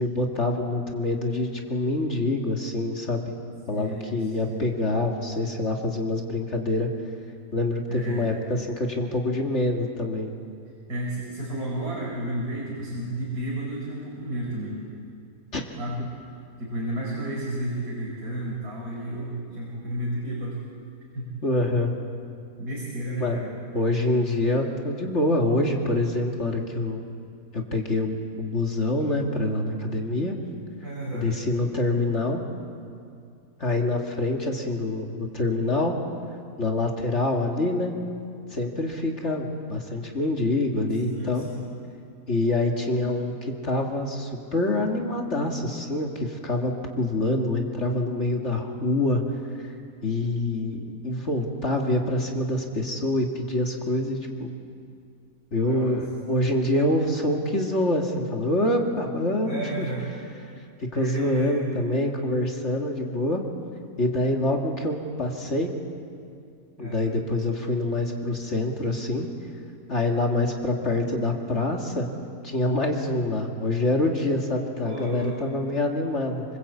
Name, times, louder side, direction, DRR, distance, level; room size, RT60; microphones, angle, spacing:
voice 1, 0.0-3.3 3.7-6.9 7.5-10.3 15.5-15.6 21.4-21.9 23.2-23.4 23.7-27.0 27.5-30.4 31.1-32.4 33.6-35.9 36.6-37.9 38.5-41.5 42.3-49.2 49.6-49.7 50.0-54.6 55.5-59.9 60.8-63.4 64.0-65.7 66.8-69.3 69.9-72.1 72.4-76.4, left 2 dB, 50° left, 1 dB, 2.5 m, -26 dB
voice 2, 3.7-4.6 7.9-8.3 10.9-14.8 15.8-16.0 16.6-20.6 21.1-21.3 22.6-23.5 30.8-31.3 41.1-41.6 55.6-56.0 59.4-60.1 60.9-61.6 66.8-67.2 74.8-75.3, right 1 dB, 90° right, -5 dB, 5.7 m, -32 dB
26.0 x 25.5 x 8.5 m, 2.4 s
omnidirectional pair, 1.6 m